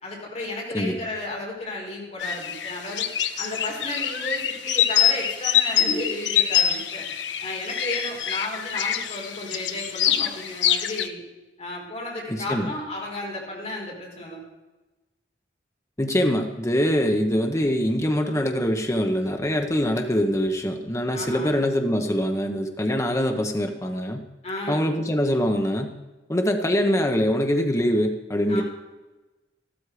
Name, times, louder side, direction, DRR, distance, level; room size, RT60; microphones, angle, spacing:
voice 1, 0.0-3.1 3.4-7.1 7.4-11.2 11.6-14.4 21.1-21.6 24.4-24.9 28.5-28.6, left 1 dB, 40° left, -3 dB, 5.0 m, -33 dB
sound 1, 2.2-11.1, left 10 dB, 80° left, 0.9 m, -25 dB
voice 2, 12.3-12.7 16.0-24.2 24.7-26.0 26.3-28.6, equal, 15° left, 4 dB, 1.0 m, -23 dB
14.0 x 13.0 x 5.0 m, 1.1 s
head